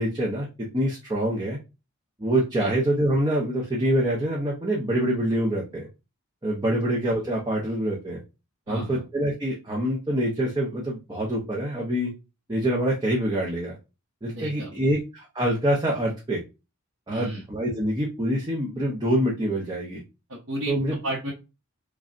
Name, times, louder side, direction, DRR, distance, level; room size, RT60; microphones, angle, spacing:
voice 1, 0.0-1.6 2.2-5.9 6.4-8.2 8.7-12.1 12.5-13.8 14.2-16.4 17.1-20.0 20.7-21.0, right 1 dB, 20° right, -3 dB, 0.7 m, -25 dB
voice 2, 8.7-9.0 14.4-14.7 17.1-17.4 20.3-20.7 21.0-21.3, right 2 dB, 75° right, -5 dB, 1.1 m, -32 dB
5.0 x 2.3 x 2.5 m, 0.28 s
head